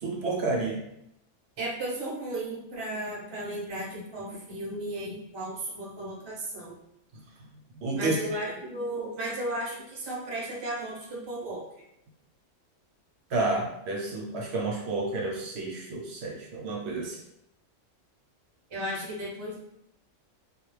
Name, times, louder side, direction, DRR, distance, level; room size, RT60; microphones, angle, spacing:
voice 1, 0.0-0.8 7.1-7.2 7.8-8.4 13.3-17.2, right 3 dB, 65° right, -1 dB, 0.8 m, -30 dB
voice 2, 1.6-6.8 8.0-11.6 18.7-19.6, right 1 dB, 30° right, -5 dB, 0.5 m, -35 dB
2.3 x 2.0 x 3.1 m, 0.79 s
omnidirectional pair, 1.3 m